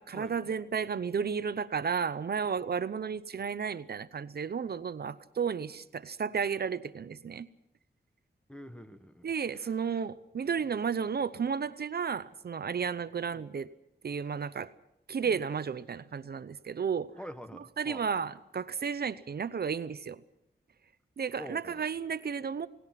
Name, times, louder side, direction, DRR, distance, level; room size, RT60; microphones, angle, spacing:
voice 1, 0.0-7.5 9.2-13.7 14.0-14.7 15.1-17.1 17.8-20.2 21.2-22.7, right 6 dB, 60° right, 14 dB, 0.7 m, -33 dB
voice 2, 8.5-9.7 13.3-13.5 15.2-15.4 17.2-18.1 21.4-21.8, equal, 5° left, 9 dB, 1.1 m, -46 dB
29.0 x 18.5 x 5.9 m, 0.81 s
wide cardioid pair, 160°, 18 cm